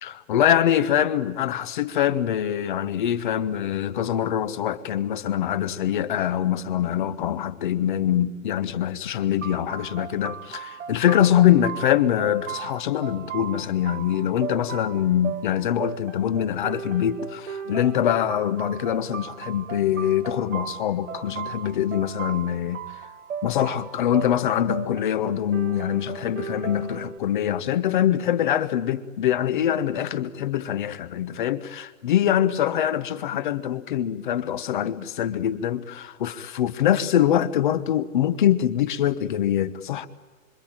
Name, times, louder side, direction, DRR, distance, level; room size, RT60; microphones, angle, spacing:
voice 1, 0.0-22.8 23.4-40.1, left 10 dB, 35° left, 1.2 m, -24 dB
sound 1, 9.4-27.2, right 7 dB, 65° right, 2.2 m, -37 dB
26.5 x 25.0 x 9.0 m
hypercardioid pair, 170°, 42 cm